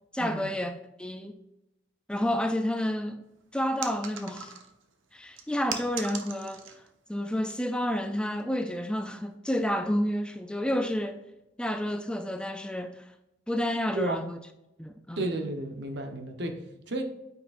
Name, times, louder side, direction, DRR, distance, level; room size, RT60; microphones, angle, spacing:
voice 1, 0.1-1.3 2.1-3.2 3.5-4.5 5.1-6.8 7.1-11.2 11.6-13.1 13.5-14.4 14.8-15.3, equal, 5° left, 0.4 m, -30 dB
sound 1, 3.8-4.8 5.4-6.9 7.2-7.6 8.2-8.4, right 7 dB, 90° right, 0.9 m, -39 dB
voice 2, 15.2-17.0, right 2 dB, 60° right, 1.0 m, -33 dB
9.0 x 5.9 x 2.6 m
head